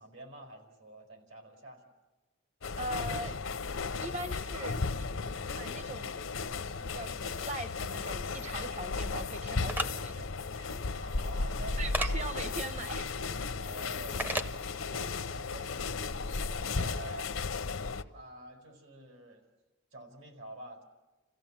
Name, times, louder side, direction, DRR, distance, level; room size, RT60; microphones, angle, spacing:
voice 1, 0.0-1.9 11.0-12.3 13.6-14.4 14.9-17.4 18.1-19.4 19.9-20.8, right 1 dB, 75° right, 4 dB, 4.8 m, -48 dB
sound 1, 2.6-18.0, left 4 dB, 75° left, 0.8 m, -35 dB
voice 2, 2.8-3.3 4.0-5.1 5.5-6.2 6.8-10.7 11.8-13.1, right 2 dB, 35° right, 10 dB, 1.0 m, -41 dB
sound 2, 9.7-9.9 11.9-12.1 14.2-14.5, right 1 dB, 10° right, 0.6 m, -31 dB
29.5 x 15.5 x 7.4 m, 1.1 s
head